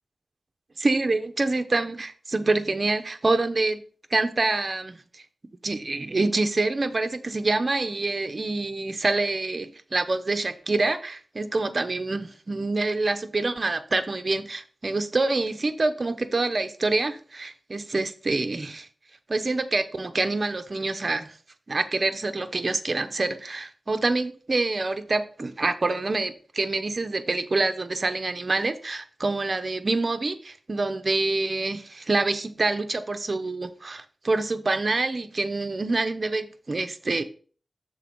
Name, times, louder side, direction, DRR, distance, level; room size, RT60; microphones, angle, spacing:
voice 1, 0.8-3.8 4.1-5.0 5.6-18.9 19.3-21.3 21.7-37.2, right 3 dB, 50° right, 0.8 m, -26 dB
6.9 x 3.9 x 5.9 m
wide cardioid pair, 65°, 0 cm